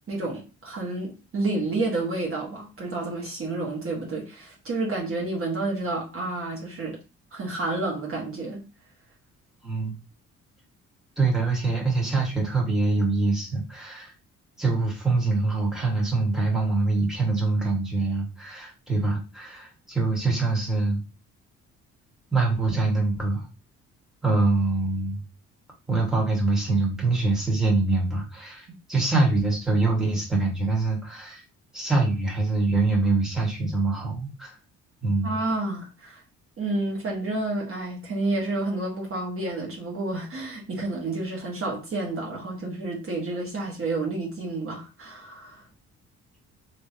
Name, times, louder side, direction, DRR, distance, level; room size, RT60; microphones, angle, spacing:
voice 1, 0.1-7.0 7.3-8.6 35.2-36.2 36.6-45.6, right 2 dB, 45° right, 1.3 m, -30 dB
voice 2, 9.6-9.9 11.2-14.1 14.6-21.0 22.3-23.4 24.2-25.2 25.9-31.4 31.7-34.6 35.0-35.4, right 3 dB, ahead, 1.5 m, -24 dB
3.5 x 2.8 x 2.7 m
cardioid pair, 90°, 30 cm